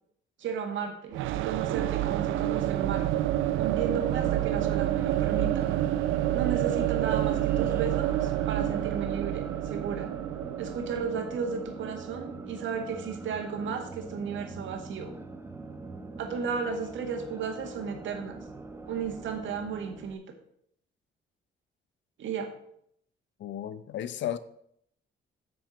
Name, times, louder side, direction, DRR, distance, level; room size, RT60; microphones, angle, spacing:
voice 1, 0.4-3.1 3.5-5.7 6.3-10.1 10.6-15.1 16.2-18.4 18.9-20.2 22.2-22.5, right 6 dB, 75° right, 1.9 m, -34 dB
sound 1, 1.1-12.9, right 14 dB, 90° right, 0.6 m, -28 dB
sound 2, 2.9-20.1, right 2 dB, 10° right, 1.0 m, -43 dB
voice 2, 23.4-24.4, left 11 dB, 70° left, 0.7 m, -34 dB
8.2 x 6.1 x 7.2 m
cardioid pair, 90°, 20 cm